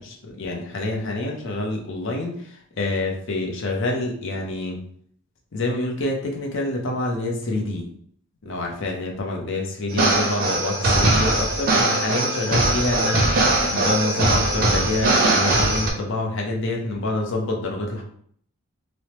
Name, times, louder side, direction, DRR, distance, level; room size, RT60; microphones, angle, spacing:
voice 1, 0.0-4.8 5.5-7.9 8.4-18.0, left 2 dB, 55° left, 0 dB, 0.6 m, -27 dB
sound 1, 9.9-15.9, right 2 dB, 40° right, 0.5 m, -20 dB
3.1 x 2.0 x 2.9 m, 0.63 s
head